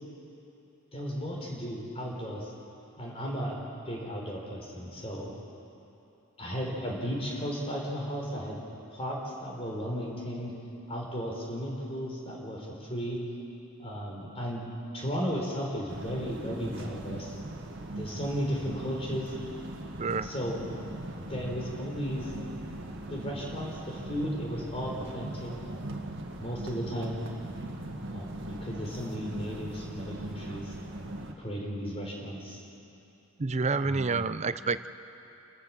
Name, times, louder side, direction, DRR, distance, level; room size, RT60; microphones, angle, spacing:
voice 1, 0.9-2.5 3.0-5.3 6.4-8.6 8.9-10.5 10.9-13.2 13.8-14.6 14.9-17.4 17.9-19.3 20.2-20.6 21.3-22.3 23.1-25.5 26.4-27.2 28.1-30.7 31.4-32.6 33.8-34.2, equal, 30° left, -2 dB, 4.3 m, -35 dB
sound 1, 15.9-31.3, right 1 dB, 60° right, 1.7 m, -40 dB
voice 2, 20.0-20.3 33.4-34.9, right 4 dB, 30° right, 13 dB, 0.5 m, -28 dB
29.0 x 13.5 x 7.5 m, 2.9 s
head